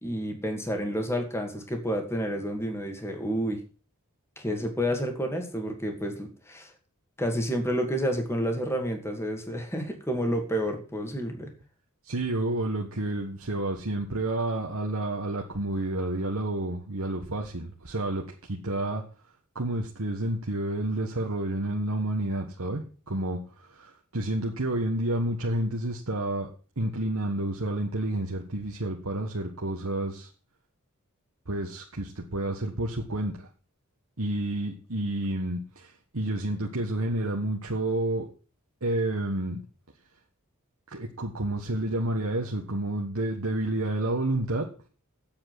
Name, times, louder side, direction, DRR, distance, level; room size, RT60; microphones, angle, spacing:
voice 1, 0.0-3.6 4.4-6.7 7.2-11.5, equal, 10° left, 4 dB, 2.5 m, -30 dB
voice 2, 12.0-19.0 19.5-26.5 26.8-30.3 31.5-33.5 34.2-38.3 38.8-39.6 40.9-44.9, right 1 dB, 70° right, 0 dB, 1.6 m, -30 dB
8.9 x 7.8 x 7.7 m, 0.38 s
head